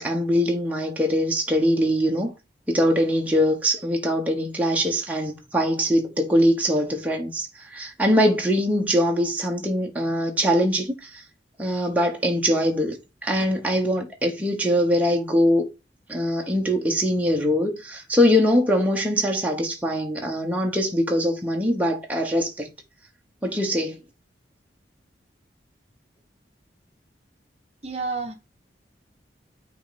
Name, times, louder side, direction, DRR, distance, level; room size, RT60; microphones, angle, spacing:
voice 1, 0.0-2.3 2.7-11.2 11.6-15.7 16.1-22.7 23.4-24.0, equal, 10° right, 1.1 m, -22 dB
voice 2, 27.8-28.3, right 4 dB, 35° right, 1.0 m, -29 dB
9.1 x 3.1 x 4.1 m
head